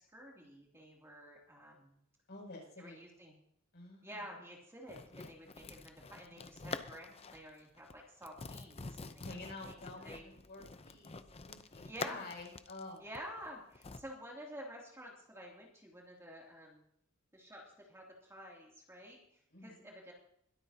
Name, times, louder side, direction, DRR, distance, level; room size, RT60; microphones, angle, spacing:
voice 1, 0.0-2.0 2.8-3.4 4.0-9.2 9.6-9.7 10.0-10.2 11.8-12.2 13.0-16.8 17.3-19.2 19.6-20.1, equal, 15° right, -2 dB, 2.8 m, -50 dB
voice 2, 2.3-3.0 3.7-4.2 9.2-11.2 11.5-13.0 19.5-19.9, left 2 dB, 55° left, -1 dB, 7.0 m, -49 dB
sound 1, 4.9-7.5 7.8-7.9 8.2-14.0, left 4 dB, 30° left, 0.7 m, -46 dB
22.5 x 13.0 x 2.9 m, 0.70 s
head